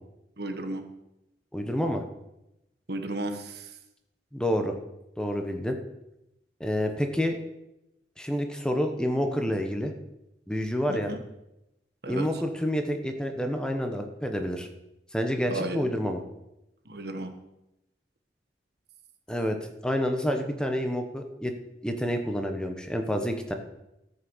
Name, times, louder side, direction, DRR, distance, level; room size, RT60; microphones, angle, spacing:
voice 1, 0.4-0.8 2.9-3.7 10.9-11.2 12.0-12.3 15.5-15.8 16.9-17.3, right 2 dB, 65° right, 7 dB, 1.4 m, -33 dB
voice 2, 1.5-2.0 4.3-4.8 5.2-5.8 6.6-7.4 8.2-9.9 10.5-11.1 12.1-14.7 15.1-16.2 19.3-19.6 19.8-21.5 21.8-23.5, equal, 5° left, 5 dB, 1.1 m, -28 dB
13.5 x 6.5 x 7.3 m, 0.89 s
head